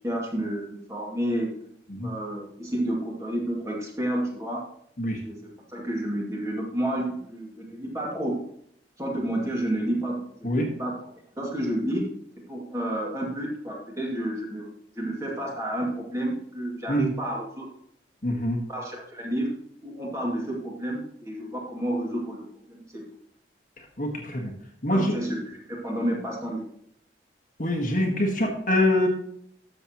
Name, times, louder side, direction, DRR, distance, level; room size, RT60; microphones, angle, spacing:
voice 1, 0.0-1.5 2.0-4.6 5.2-5.4 5.7-8.4 9.0-10.9 11.4-12.1 12.5-17.7 18.3-18.4 18.7-19.5 19.8-23.0 24.9-26.6, right 1 dB, 15° right, -2 dB, 2.2 m, -30 dB
voice 2, 18.2-18.6 24.0-24.5 24.8-25.1 27.6-29.1, left 1 dB, 45° left, 2 dB, 1.5 m, -24 dB
13.0 x 7.0 x 3.0 m, 0.69 s
head